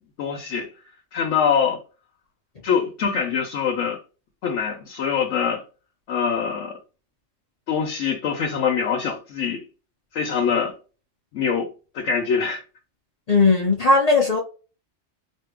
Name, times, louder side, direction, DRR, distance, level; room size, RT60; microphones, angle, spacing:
voice 1, 0.2-0.7 1.1-1.8 2.6-4.0 4.4-5.6 6.1-6.7 7.7-9.6 10.1-10.7 11.3-11.7 11.9-12.6, left 6 dB, 85° left, 1.0 m, -24 dB
voice 2, 13.3-14.4, left 3 dB, 55° left, 0.4 m, -17 dB
2.6 x 2.1 x 3.4 m
omnidirectional pair, 1.3 m